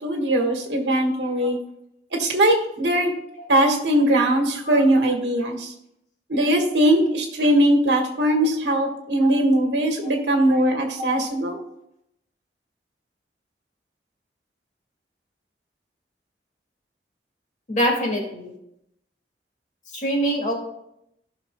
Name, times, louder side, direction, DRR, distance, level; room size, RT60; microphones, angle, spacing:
voice 1, 0.0-1.6 2.2-3.1 3.5-5.7 6.3-11.6, right 1 dB, 75° right, 3 dB, 1.5 m, -20 dB
voice 2, 17.7-18.5 19.9-20.5, equal, 45° left, 0 dB, 1.9 m, -25 dB
15.0 x 5.8 x 2.2 m, 0.79 s
head